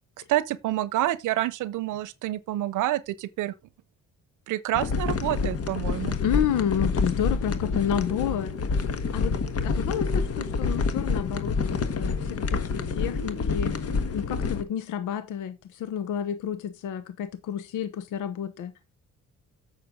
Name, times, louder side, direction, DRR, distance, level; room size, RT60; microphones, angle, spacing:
voice 1, 0.3-3.5 4.5-6.1, right 14 dB, 85° right, 0.7 m, -28 dB
sound 1, 4.7-14.6, left 4 dB, 50° left, 1.4 m, -27 dB
voice 2, 6.2-8.5 9.1-9.4 9.6-13.7 14.1-18.7, left 9 dB, 85° left, 0.9 m, -30 dB
8.8 x 6.5 x 3.6 m
cardioid pair, 90°, 30 cm